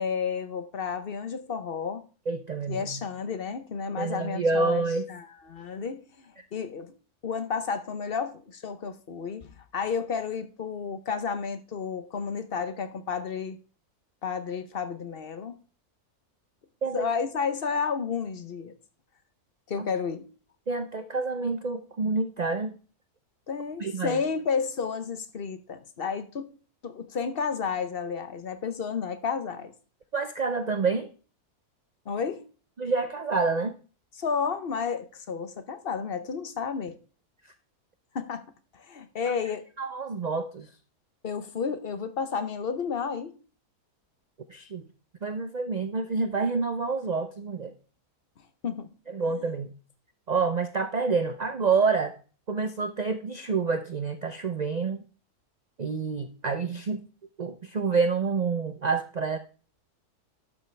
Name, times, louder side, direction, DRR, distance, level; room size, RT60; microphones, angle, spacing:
voice 1, 0.0-2.0 2.7-4.8 5.1-6.9 7.2-13.6 14.2-15.5 16.9-18.7 19.7-20.3 23.5-26.5 26.8-29.7 32.1-32.5 34.2-37.0 38.1-38.4 38.7-39.6 41.2-43.4 48.6-48.9, left 6 dB, 45° left, 0.9 m, -31 dB
voice 2, 2.3-3.0 4.0-5.1 16.8-17.1 19.8-19.9 20.7-22.7 23.8-24.2 30.1-31.1 32.8-33.8 39.8-40.7 44.5-44.8 45.2-47.7 49.1-49.7 50.3-52.2 52.5-55.0 55.8-57.1 57.4-59.4, right 4 dB, 80° right, 0.3 m, -28 dB
12.0 x 7.3 x 3.3 m
omnidirectional pair, 1.6 m